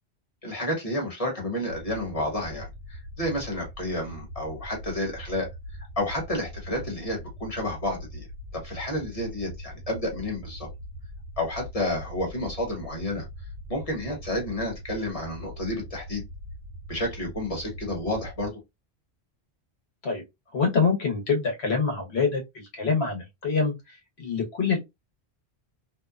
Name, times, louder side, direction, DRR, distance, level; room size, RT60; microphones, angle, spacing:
voice 1, 0.4-5.5 5.8-8.3 8.5-10.7 11.4-13.2 13.7-16.2 16.9-18.5, left 1 dB, 35° left, 1.1 m, -30 dB
sound 1, 1.7-18.5, equal, 65° right, 1.0 m, -41 dB
voice 2, 20.5-24.8, left 5 dB, 75° left, 1.2 m, -26 dB
2.7 x 2.2 x 2.3 m
omnidirectional pair, 1.1 m